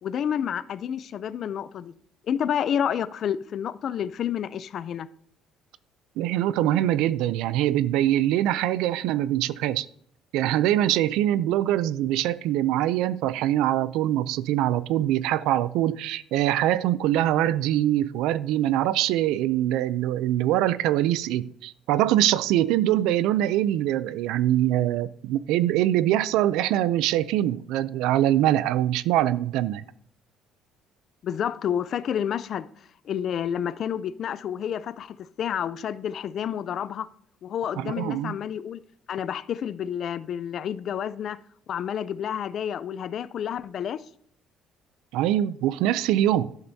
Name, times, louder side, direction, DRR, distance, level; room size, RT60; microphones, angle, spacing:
voice 1, 0.0-1.9 2.3-5.1 31.2-32.7 33.0-37.1 37.4-38.8 39.1-41.4 41.7-44.0, left 9 dB, 45° left, 0.4 m, -29 dB
voice 2, 6.2-9.9 10.3-29.8 37.8-38.3 45.1-46.5, right 13 dB, 85° right, 0.4 m, -23 dB
11.5 x 11.5 x 2.7 m
cardioid pair, 150°, 0 cm